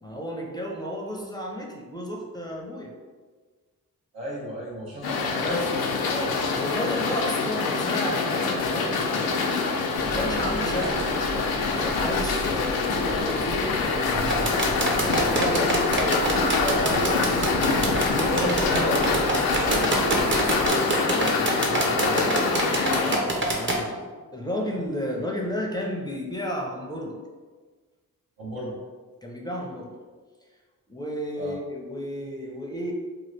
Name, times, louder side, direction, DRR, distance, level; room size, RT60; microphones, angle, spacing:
voice 1, 0.0-2.9 6.1-9.6 10.0-11.1 11.5-17.5 22.9-27.2 29.2-29.9 30.9-32.9, equal, 10° left, -1 dB, 0.5 m, -32 dB
voice 2, 4.1-5.7 18.1-22.5 28.4-28.8 31.4-31.6, equal, 85° right, -4 dB, 1.0 m, -32 dB
sound 1, 5.0-23.2, left 4 dB, 80° left, 0.5 m, -25 dB
sound 2, 9.9-20.7, right 1 dB, 50° right, 1.0 m, -36 dB
sound 3, 14.3-23.8, right 2 dB, 30° right, 0.7 m, -25 dB
2.9 x 2.4 x 3.2 m, 1.4 s
cardioid pair, 65°, 36 cm